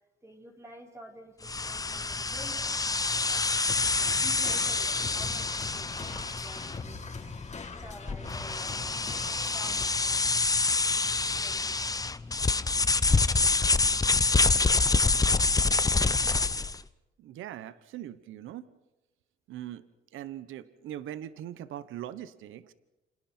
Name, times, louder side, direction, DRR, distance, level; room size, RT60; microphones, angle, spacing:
voice 1, 0.2-3.7 4.0-7.2 7.8-9.1 9.5-10.5 11.1-12.0, equal, 15° right, 0 dB, 4.4 m, -50 dB
sound 1, 1.4-16.8, left 3 dB, 20° left, 0.8 m, -27 dB
sound 2, 3.7-9.8, left 4 dB, 35° left, 4.0 m, -42 dB
voice 2, 17.2-18.7 19.5-19.8 20.1-22.7, right 12 dB, 85° right, 14 dB, 1.0 m, -41 dB
29.5 x 27.0 x 4.4 m, 1.0 s
cardioid pair, 90°, 20 cm